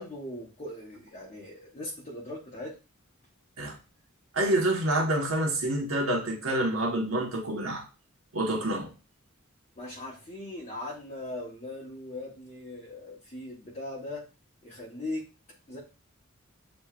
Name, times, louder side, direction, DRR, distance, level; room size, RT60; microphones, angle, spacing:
voice 1, 0.0-2.8 9.8-14.2 14.6-15.2 15.7-15.8, left 1 dB, 35° left, 0.9 m, -39 dB
voice 2, 4.3-7.8 8.3-8.9, right 1 dB, 75° right, 1.2 m, -27 dB
7.3 x 3.0 x 2.4 m
head